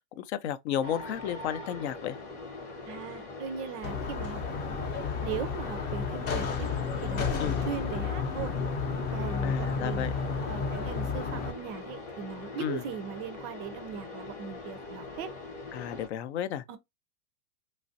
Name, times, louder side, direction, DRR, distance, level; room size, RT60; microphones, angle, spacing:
voice 1, 0.2-2.2 7.4-7.6 9.4-10.1 12.6-12.8 15.7-16.6, left 10 dB, 70° left, 0.6 m, -33 dB
sound 1, 0.8-16.1, left 3 dB, 90° left, 1.5 m, -42 dB
voice 2, 2.9-4.4 4.7-4.8 5.2-6.7 7.0-8.5 9.1-10.1 10.5-15.3 16.7-16.8, right 8 dB, 35° right, 0.4 m, -39 dB
sound 2, 3.8-11.5, left 5 dB, 25° left, 0.6 m, -32 dB
3.1 x 2.4 x 2.5 m
supercardioid pair, 140°, 35 cm